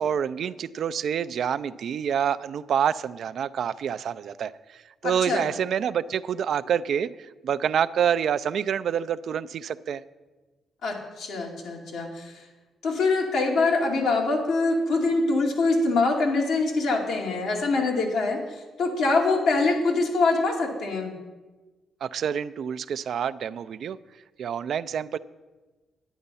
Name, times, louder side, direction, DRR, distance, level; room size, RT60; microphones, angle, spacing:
voice 1, 0.0-7.1 7.4-10.0 22.0-24.0 24.4-25.2, right 8 dB, 70° right, 15 dB, 0.4 m, -27 dB
voice 2, 5.0-5.4 10.8-12.4 12.8-18.4 18.8-21.1, left 3 dB, 75° left, 0 dB, 2.4 m, -24 dB
10.0 x 9.4 x 5.5 m, 1.2 s
supercardioid pair, 65°, 0 cm